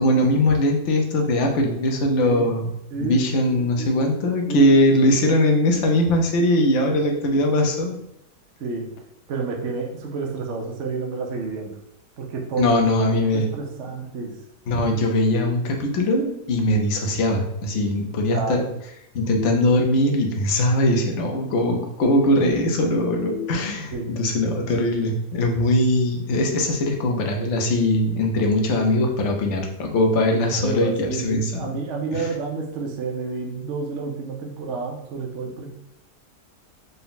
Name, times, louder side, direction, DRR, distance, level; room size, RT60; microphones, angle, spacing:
voice 1, 0.0-2.7 3.0-7.9 12.6-13.5 14.7-18.6 19.1-31.8 32.1-32.3, left 1 dB, 60° left, 2 dB, 0.9 m, -21 dB
voice 2, 2.2-2.5 2.9-3.4 3.8-3.9 4.2-4.7 6.5-6.7 8.6-8.9 9.3-11.8 12.2-12.7 13.2-14.3 18.3-18.7 23.9-24.1 30.5-35.7, right 4 dB, 60° right, 0 dB, 0.8 m, -30 dB
sound 1, 15.3-16.2 19.3-20.3 23.3-24.3, left 7 dB, 20° right, 0.7 m, -38 dB
3.9 x 2.2 x 4.0 m, 0.80 s
omnidirectional pair, 1.7 m